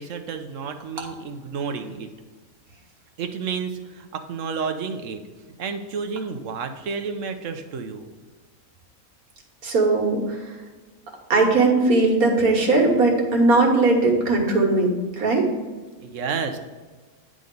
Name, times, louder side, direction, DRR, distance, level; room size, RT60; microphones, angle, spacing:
voice 1, 0.0-2.1 3.2-5.2 5.6-8.1 16.0-16.6, right 5 dB, 65° right, 7 dB, 1.0 m, -31 dB
voice 2, 9.6-10.5 11.3-15.5, right 3 dB, 85° right, 0 dB, 1.9 m, -19 dB
9.6 x 3.8 x 5.2 m, 1.3 s
omnidirectional pair, 1.5 m